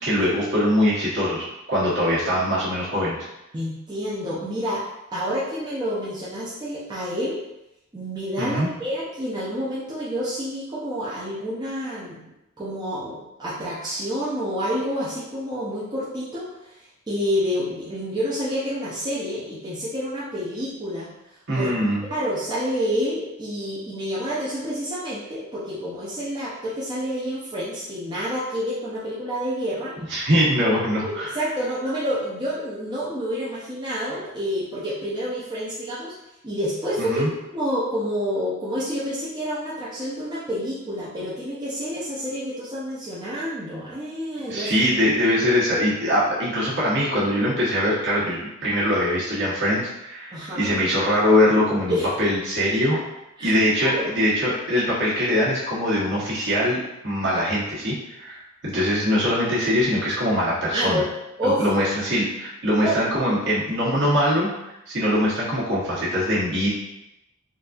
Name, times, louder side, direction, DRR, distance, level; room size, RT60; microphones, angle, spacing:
voice 1, 0.0-3.2 8.4-8.7 21.5-22.0 30.1-31.3 37.0-37.3 44.5-53.0 53.4-61.0 61.4-64.5 64.9-66.7, equal, 55° right, -7 dB, 1.2 m, -22 dB
voice 2, 3.5-4.8 5.1-7.4 7.9-12.2 12.6-16.8 17.1-21.1 21.5-21.7 22.1-29.9 31.0-36.1 36.4-37.3 37.5-44.7 50.3-50.8 51.9-52.1 53.4-53.5 53.8-54.1 60.7-61.1 61.4-61.7 62.8-63.0, equal, 20° right, -9 dB, 0.6 m, -28 dB
3.9 x 2.6 x 2.4 m, 0.90 s
head